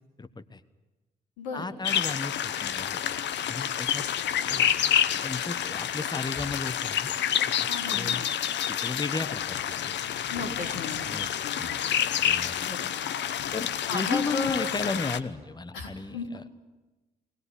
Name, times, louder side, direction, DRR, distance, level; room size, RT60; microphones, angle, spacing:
voice 1, 0.2-0.6 1.5-3.0 3.5-4.0 4.5-4.9 5.2-7.1 7.9-8.3 8.7-9.9 11.0-11.8 12.2-12.5 13.5-16.4, left 3 dB, 20° left, 12 dB, 1.4 m, -34 dB
voice 2, 1.4-1.7 7.7-8.2 10.3-11.0 11.4-11.9 12.6-12.9 13.9-14.7 15.7-16.3, left 4 dB, 80° left, 1 dB, 3.6 m, -35 dB
sound 1, 1.8-15.2, left 10 dB, 60° left, 1.0 m, -28 dB
21.5 x 20.0 x 10.0 m, 1.2 s
hypercardioid pair, 45°, 21 cm